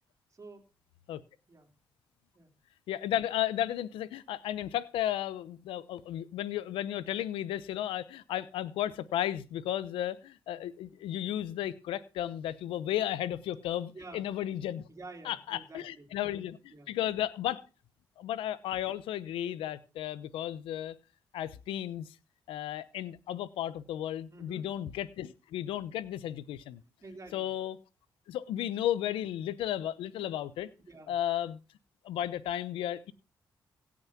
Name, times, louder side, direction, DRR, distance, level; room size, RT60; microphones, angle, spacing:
voice 1, 0.3-0.6 1.5-1.7 2.3-2.5 13.9-14.2 14.9-16.1 16.7-16.9 24.3-24.7 27.0-27.5 30.9-31.1, right 3 dB, 35° right, 1 dB, 3.3 m, -49 dB
voice 2, 2.9-14.9 15.2-17.7 18.2-21.0 21.3-22.1 22.5-26.8 27.3-27.8 28.3-30.7 31.1-31.6 32.0-33.1, left 12 dB, 85° left, 16 dB, 0.9 m, -34 dB
16.5 x 6.3 x 5.9 m, 0.32 s
supercardioid pair, 60°, 9 cm